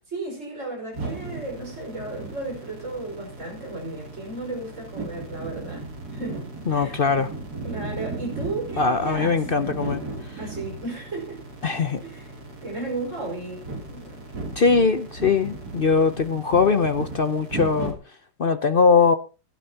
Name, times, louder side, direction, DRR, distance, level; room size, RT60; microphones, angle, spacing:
voice 1, 0.1-7.0 7.6-9.8 10.4-11.4 12.0-12.3 12.6-14.2, right 2 dB, 45° right, 0 dB, 5.7 m, -34 dB
sound 1, 0.9-17.9, right 3 dB, 65° right, 3.6 m, -36 dB
voice 2, 6.7-7.3 8.8-10.0 11.6-12.0 14.6-17.9 18.4-19.1, left 5 dB, 50° left, 10 dB, 0.6 m, -21 dB
19.5 x 11.0 x 2.9 m, 0.33 s
omnidirectional pair, 1.8 m